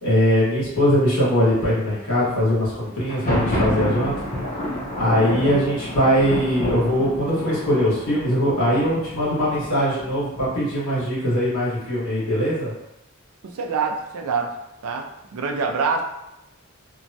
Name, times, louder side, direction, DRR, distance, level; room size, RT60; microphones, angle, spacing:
voice 1, 0.0-4.2 4.9-12.7, equal, 85° left, -8 dB, 1.4 m, -21 dB
Thunder, 3.0-10.8, left 1 dB, 35° left, 0.7 m, -29 dB
voice 2, 13.5-14.5 14.8-15.0 15.3-16.0, right 5 dB, 85° right, 3 dB, 0.4 m, -25 dB
3.0 x 2.2 x 2.7 m, 0.88 s
head